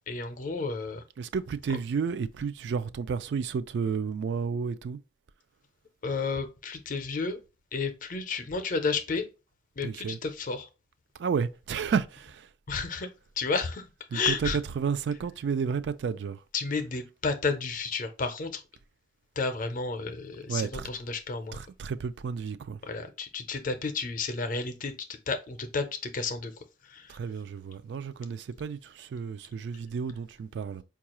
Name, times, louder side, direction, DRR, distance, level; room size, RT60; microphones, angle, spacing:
voice 1, 0.1-1.0 6.0-7.4 7.7-9.3 9.8-10.7 12.7-13.1 13.4-14.6 16.5-18.6 19.4-21.6 22.8-26.5 26.8-27.2, left 4 dB, 50° left, 0.5 m, -32 dB
voice 2, 1.2-5.0 9.8-10.2 11.1-12.5 14.1-16.4 20.5-20.9 21.5-22.8 27.1-30.8, right 6 dB, 70° right, 0.3 m, -31 dB
4.6 x 2.3 x 2.9 m
head